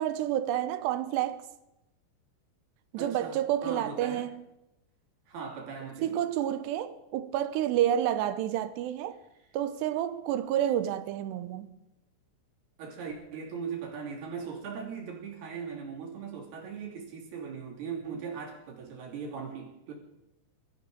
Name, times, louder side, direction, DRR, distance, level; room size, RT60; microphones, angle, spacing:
voice 1, 0.0-1.4 2.9-4.4 6.0-9.2 9.5-11.7, right 11 dB, 80° right, 2.8 m, -29 dB
voice 2, 3.0-4.3 5.3-6.2 12.8-19.9, right 6 dB, 65° right, 4.7 m, -39 dB
22.5 x 14.5 x 3.9 m
omnidirectional pair, 5.1 m